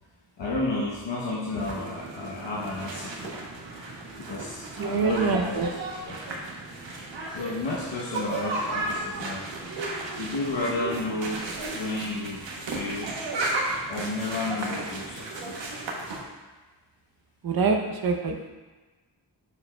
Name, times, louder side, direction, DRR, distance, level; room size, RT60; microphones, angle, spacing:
voice 1, 0.4-3.4 4.2-5.6 6.0-6.2 7.3-9.5 10.2-13.1 13.9-15.6, left 2 dB, 80° left, -5 dB, 1.0 m, -32 dB
sound 1, 1.6-16.2, right 2 dB, 85° right, 1.0 m, -34 dB
voice 2, 4.8-5.7 17.4-18.4, right 4 dB, 55° right, 3 dB, 0.7 m, -25 dB
7.0 x 6.6 x 2.2 m, 1.2 s
wide cardioid pair, 75°, 43 cm